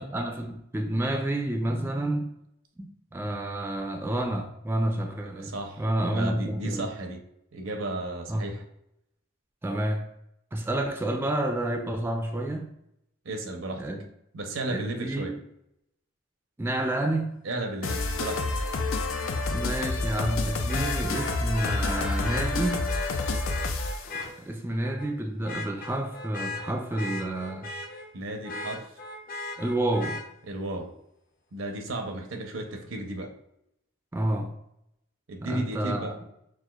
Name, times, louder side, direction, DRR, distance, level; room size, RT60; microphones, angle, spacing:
voice 1, 0.0-2.3 2.8-6.9 8.3-8.4 9.6-10.1 10.5-12.7 13.8-14.1 14.7-15.4 16.6-17.4 19.5-22.9 24.4-27.7 29.6-30.2 34.1-34.6 35.4-36.2, right 1 dB, 10° right, 4 dB, 0.3 m, -29 dB
voice 2, 5.2-5.8 6.1-7.2 7.5-8.6 13.2-13.8 14.3-15.3 17.4-18.5 28.1-28.9 30.5-30.9 31.5-33.3 35.3-36.2, right 2 dB, 85° right, 4 dB, 0.7 m, -34 dB
sound 1, 17.8-24.1, left 3 dB, 90° left, 0.5 m, -29 dB
Vehicle horn car horn honking, 17.9-18.0 20.7-24.3 24.8-25.1 25.4-28.1 28.4-30.2 32.1-32.2, left 2 dB, 45° left, 0.6 m, -37 dB
6.0 x 2.4 x 2.3 m, 0.78 s
head